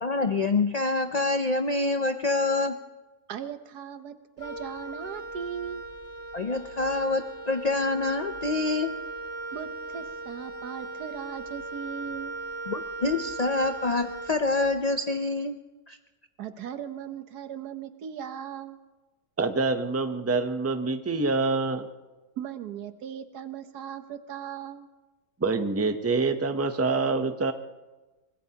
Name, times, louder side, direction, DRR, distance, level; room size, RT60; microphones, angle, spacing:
voice 1, 0.0-2.8 6.3-8.9 12.7-15.6 15.9-16.0, left 3 dB, 80° left, 8 dB, 0.3 m, -26 dB
voice 2, 3.3-5.8 9.5-12.3 16.4-18.8 22.4-24.9, right 8 dB, 85° right, 10 dB, 1.5 m, -38 dB
Wind instrument woodwind instrument, 4.4-14.8, right 3 dB, 55° left, 2.4 m, -38 dB
voice 3, 19.4-21.9 25.4-27.5, right 3 dB, 15° right, 8 dB, 0.5 m, -26 dB
24.5 x 20.0 x 2.9 m, 1.2 s
omnidirectional pair, 1.6 m